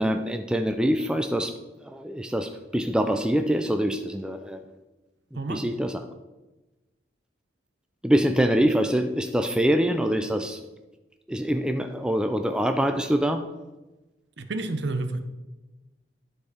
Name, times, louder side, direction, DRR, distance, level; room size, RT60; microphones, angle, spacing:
voice 1, 0.0-1.5 1.8-4.6 5.5-6.0 8.0-10.6 11.3-13.5, equal, 5° right, 7 dB, 0.3 m, -24 dB
voice 2, 5.3-5.7 14.4-15.2, right 2 dB, 65° right, 8 dB, 0.7 m, -30 dB
12.0 x 4.5 x 4.9 m, 1.1 s
head